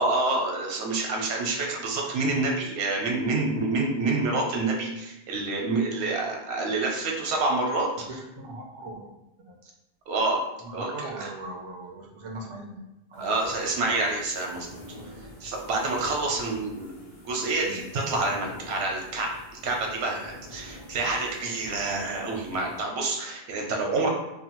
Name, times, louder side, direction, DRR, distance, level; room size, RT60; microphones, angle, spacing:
voice 1, 0.0-7.9 10.1-10.4 10.7-11.3 13.2-14.7 15.4-19.3 19.6-24.1, right 3 dB, 90° right, 0 dB, 0.9 m, -27 dB
voice 2, 8.1-9.1 9.4-9.6 10.6-12.8 13.1-13.3 17.6-17.8, right 2 dB, 45° right, 1 dB, 0.4 m, -39 dB
sound 1, 13.1-22.8, equal, 40° left, 0.6 m, -46 dB
2.8 x 2.1 x 2.9 m, 0.94 s
omnidirectional pair, 1.1 m